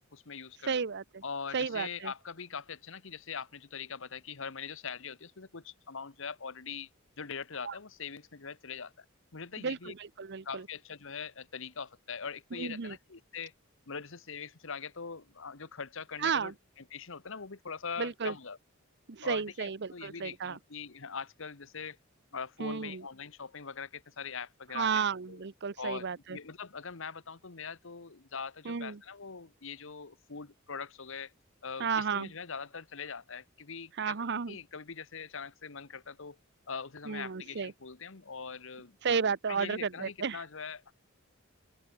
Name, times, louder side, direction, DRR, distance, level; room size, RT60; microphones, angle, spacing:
voice 1, 0.1-0.8 1.2-6.9 7.2-9.0 9.3-9.9 10.4-13.5 13.9-16.5 16.9-18.6 19.2-22.0 22.3-25.4 25.8-31.3 31.6-36.4 36.7-39.2 39.5-40.9, left 6 dB, 70° left, 1.3 m, -42 dB
voice 2, 0.6-1.2 1.5-2.1 7.6-7.7 9.6-10.7 12.5-13.0 16.2-16.5 18.0-18.3 19.1-20.6 22.6-23.0 24.7-26.4 28.6-29.0 31.8-32.3 34.0-34.6 37.1-37.7 39.0-40.4, right 6 dB, 55° right, 0.8 m, -33 dB
open air
head